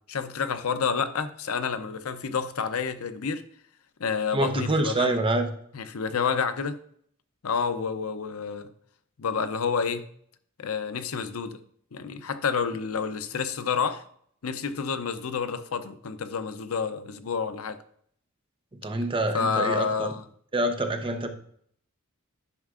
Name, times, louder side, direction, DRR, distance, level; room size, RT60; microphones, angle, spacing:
voice 1, 0.1-3.4 4.0-5.2 5.7-6.8 7.4-8.7 9.2-10.0 10.6-11.6 11.9-14.0 14.4-17.8 19.3-20.2, left 5 dB, 90° left, 11 dB, 0.6 m, -29 dB
voice 2, 4.3-5.5 18.8-20.1 20.5-21.3, right 2 dB, 25° right, 5 dB, 0.8 m, -26 dB
11.0 x 6.3 x 2.5 m, 0.63 s
head